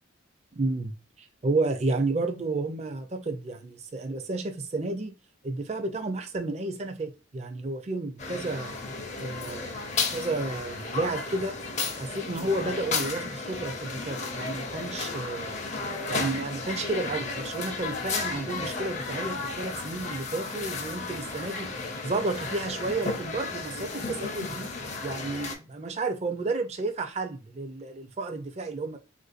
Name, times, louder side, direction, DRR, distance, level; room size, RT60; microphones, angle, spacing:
voice 1, 0.5-0.9 1.2-5.1 5.4-8.8 9.2-11.6 11.9-15.5 16.1-21.7 22.0-24.7 25.0-29.0, right 2 dB, 35° right, 0.4 m, -31 dB
sound 1, 8.2-25.5, left 4 dB, 35° left, 0.5 m, -33 dB
3.4 x 2.6 x 2.4 m
head